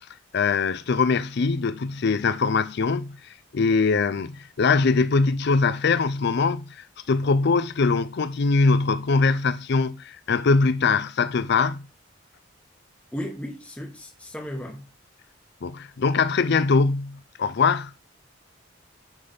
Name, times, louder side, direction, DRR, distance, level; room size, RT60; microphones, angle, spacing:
voice 1, 0.3-3.2 3.5-11.8 15.6-17.9, left 4 dB, 55° left, 0.5 m, -22 dB
voice 2, 13.1-14.8, equal, 5° left, 1.2 m, -35 dB
10.0 x 3.5 x 5.5 m
head